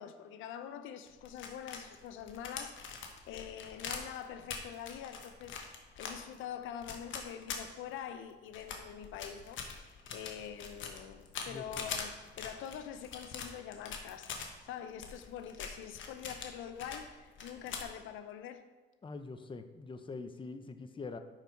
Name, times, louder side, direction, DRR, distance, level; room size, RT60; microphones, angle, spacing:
voice 1, 0.0-3.0 3.3-5.6 6.0-18.7, left 9 dB, 90° left, 0.6 m, -45 dB
sound 1, 1.1-8.1 8.5-14.5 14.9-17.1 17.3-17.9, left 6 dB, 75° left, 1.2 m, -43 dB
voice 2, 11.5-11.9 19.0-21.2, left 3 dB, 25° left, 0.7 m, -44 dB
10.5 x 4.6 x 4.6 m
cardioid pair, 90°, 20 cm